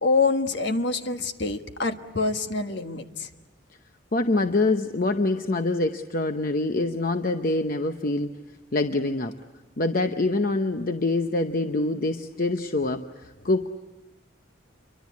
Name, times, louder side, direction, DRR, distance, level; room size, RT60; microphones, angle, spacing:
voice 1, 0.0-3.3, left 3 dB, 60° left, 6 dB, 1.5 m, -26 dB
voice 2, 4.1-8.3 8.7-9.4 9.8-13.7, left 2 dB, 45° left, 7 dB, 0.8 m, -25 dB
28.5 x 24.0 x 8.5 m, 1.2 s
head